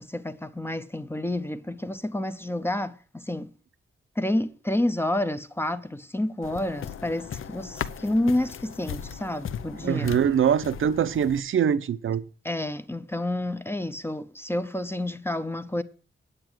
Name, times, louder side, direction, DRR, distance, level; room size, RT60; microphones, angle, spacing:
voice 1, 0.0-3.5 4.2-10.2 12.4-15.8, left 1 dB, 10° left, 0.5 m, -29 dB
sound 1, 6.4-11.4, left 8 dB, 80° left, 0.7 m, -37 dB
voice 2, 9.8-12.2, right 8 dB, 75° right, 0.7 m, -23 dB
9.0 x 8.9 x 7.8 m
wide cardioid pair, 170°, 21 cm